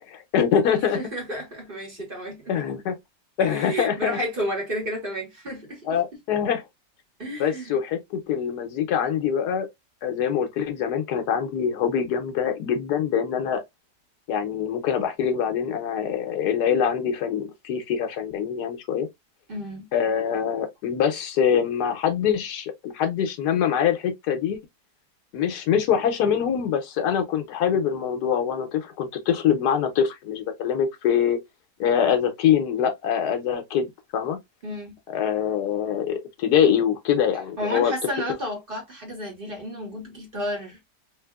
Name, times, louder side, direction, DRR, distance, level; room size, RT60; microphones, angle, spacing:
voice 1, 0.1-1.0 2.5-2.9 3.4-4.2 5.9-6.6 7.4-9.7 10.0-13.6 14.3-19.1 19.9-24.6 25.3-31.4 31.8-34.4 35.1-37.9, left 8 dB, 75° left, 1.3 m, -24 dB
voice 2, 0.8-2.6 3.4-6.0 7.2-7.8 19.5-19.9 34.6-35.0 37.6-40.8, equal, 35° right, 1.5 m, -32 dB
3.5 x 2.6 x 2.3 m
omnidirectional pair, 1.8 m